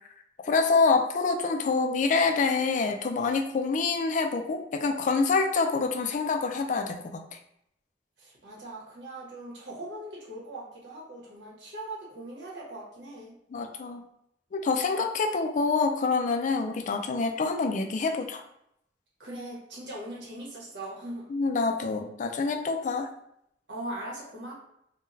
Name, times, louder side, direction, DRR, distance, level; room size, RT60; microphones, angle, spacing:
voice 1, 0.5-7.2 13.5-14.1 14.5-18.4 21.3-23.1, left 4 dB, 45° left, 5 dB, 0.3 m, -26 dB
voice 2, 8.2-13.3 19.2-21.2 23.7-24.5, right 1 dB, 80° right, -4 dB, 1.3 m, -40 dB
3.6 x 2.2 x 2.6 m, 0.76 s
head